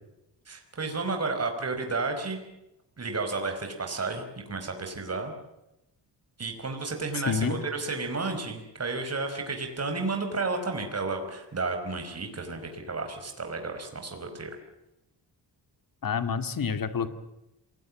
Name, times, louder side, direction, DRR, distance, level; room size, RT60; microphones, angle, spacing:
voice 1, 0.5-2.4 3.0-5.3 6.4-14.5, right 3 dB, 35° right, 5 dB, 5.1 m, -32 dB
voice 2, 7.3-7.6 16.0-17.1, left 6 dB, 50° left, 10 dB, 2.2 m, -28 dB
27.0 x 20.0 x 7.5 m, 0.92 s
wide cardioid pair, 125°, 43 cm